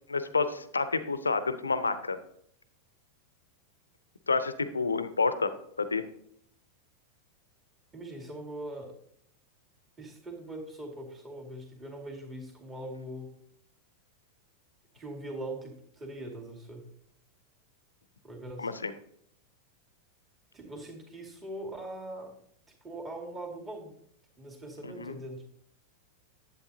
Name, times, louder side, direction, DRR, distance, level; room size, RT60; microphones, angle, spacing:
voice 1, 0.1-2.2 4.3-6.0 18.6-18.9 24.8-25.1, left 4 dB, 75° left, 12 dB, 0.6 m, -29 dB
voice 2, 7.9-9.0 10.0-13.3 14.9-16.9 18.2-18.7 20.5-22.3 22.8-24.0 24.4-25.4, right 1 dB, 20° right, 1 dB, 2.3 m, -41 dB
10.5 x 8.4 x 2.8 m, 0.69 s
figure-of-eight pair, 90°, 0 cm